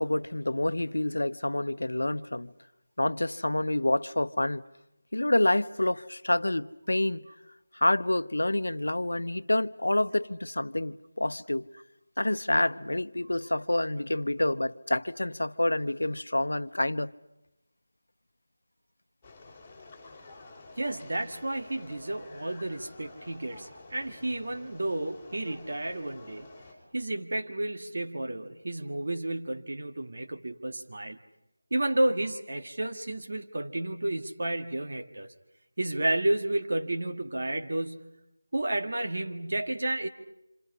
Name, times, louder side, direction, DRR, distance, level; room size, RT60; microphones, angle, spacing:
voice 1, 0.0-2.5 3.0-4.6 5.1-7.3 7.7-11.7 12.2-17.1, left 1 dB, 85° left, 0.8 m, -28 dB
sound 1, 19.2-26.7, left 3 dB, 5° left, 5.0 m, -50 dB
voice 2, 20.8-26.5 26.9-31.2 31.7-35.3 35.8-38.1 38.5-40.1, right 1 dB, 60° right, 1.9 m, -31 dB
28.0 x 27.0 x 5.6 m
figure-of-eight pair, 170°, 0 cm